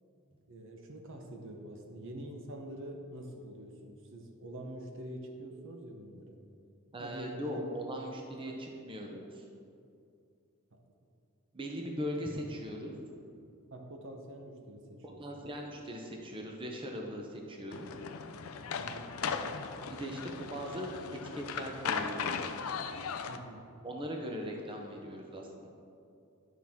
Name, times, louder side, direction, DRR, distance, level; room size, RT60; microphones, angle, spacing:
voice 1, 0.5-6.4 7.0-7.6 8.4-8.9 10.7-10.8 13.7-15.5 18.7-19.1 23.3-23.7, right 1 dB, 60° right, 3 dB, 0.9 m, -46 dB
voice 2, 6.9-9.4 11.5-12.9 15.2-17.9 19.8-20.9 21.3-22.3 23.8-25.7, equal, 25° right, 1 dB, 0.8 m, -39 dB
sound 1, 17.7-23.4, left 6 dB, 70° left, 0.5 m, -37 dB
11.0 x 5.9 x 3.6 m, 2.5 s
head